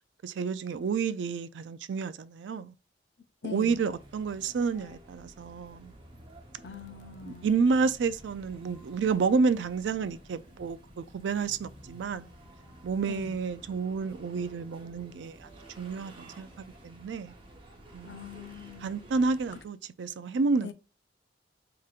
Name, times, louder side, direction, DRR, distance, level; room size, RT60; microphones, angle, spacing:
voice 1, 0.2-2.7 3.4-5.9 7.2-12.3 12.8-15.5 15.8-17.3 17.9-18.2 18.8-20.7, right 5 dB, 75° right, 0.4 m, -30 dB
voice 2, 3.4-3.8 6.6-7.5 13.1-13.3 18.0-18.9 20.6-20.7, left 7 dB, 65° left, 0.6 m, -42 dB
sound 1, 3.6-19.6, right 1 dB, 30° right, 0.9 m, -52 dB
4.7 x 3.0 x 2.4 m
head